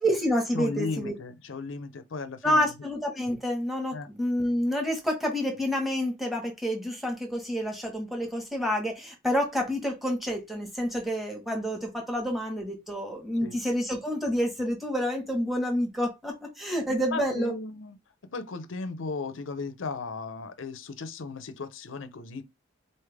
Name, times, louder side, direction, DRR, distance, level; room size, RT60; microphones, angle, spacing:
voice 1, 0.0-1.1 2.4-17.5, equal, ahead, 1.2 m, -28 dB
voice 2, 0.5-2.7 3.9-4.1 13.4-13.6 16.9-18.0 18.3-22.5, left 3 dB, 65° left, 0.6 m, -36 dB
4.2 x 3.3 x 3.4 m
head